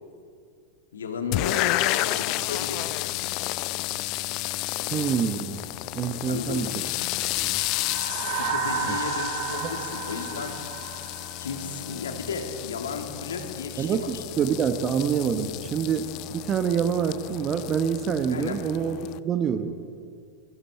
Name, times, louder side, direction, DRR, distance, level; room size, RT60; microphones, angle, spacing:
voice 1, 0.9-2.9 6.3-6.8 8.3-10.5 11.4-14.2 18.3-18.6, left 5 dB, 65° left, 4 dB, 2.6 m, -34 dB
sound 1, 1.3-19.2, left 19 dB, 40° left, 0.5 m, -31 dB
voice 2, 4.9-5.6 5.9-6.7 7.4-7.6 8.9-9.0 9.6-9.7 13.8-19.0 19.2-19.7, right 7 dB, 30° right, 8 dB, 1.2 m, -26 dB
sound 2, 7.4-12.0, right 5 dB, 55° right, 7.2 m, -32 dB
27.5 x 23.0 x 4.4 m, 2.3 s
figure-of-eight pair, 90°, 0 cm